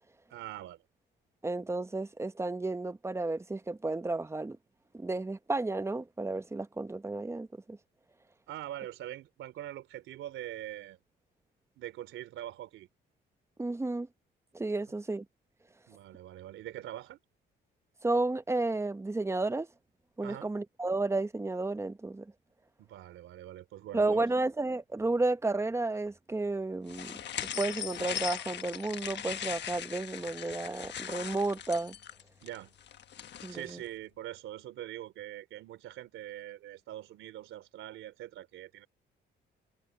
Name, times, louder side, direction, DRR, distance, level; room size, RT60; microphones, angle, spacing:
voice 1, 0.3-0.8 8.5-11.0 11.8-12.9 15.9-17.2 20.2-20.5 22.8-24.2 32.4-32.7 33.5-38.9, right 13 dB, 85° right, 3.2 m, -43 dB
voice 2, 1.4-4.6 4.9-7.8 13.6-14.1 14.5-15.2 18.0-19.7 20.2-22.3 23.9-27.1 27.6-32.0 33.4-33.8, right 2 dB, 15° right, 0.9 m, -32 dB
sound 1, 26.9-33.7, left 9 dB, 60° left, 1.3 m, -39 dB
cardioid pair, 90°, 20 cm